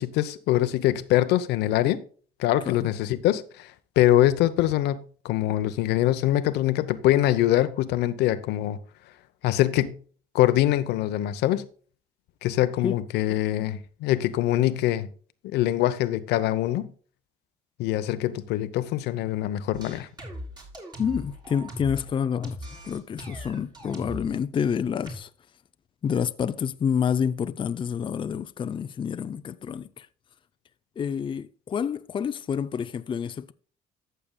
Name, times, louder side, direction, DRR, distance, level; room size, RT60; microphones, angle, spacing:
voice 1, 0.0-2.0 2.4-8.8 9.4-10.0 10.3-11.6 12.4-15.1 15.4-16.9 17.8-20.1, left 14 dB, 85° left, 0.8 m, -24 dB
sound 1, 19.7-22.1 22.4-24.3 25.1-25.2, equal, 25° right, 3.4 m, -39 dB
voice 2, 21.0-22.6 22.8-25.3 26.0-30.1 31.0-33.5, left 7 dB, 30° left, 0.5 m, -28 dB
14.0 x 6.9 x 2.2 m
cardioid pair, 110°, 17 cm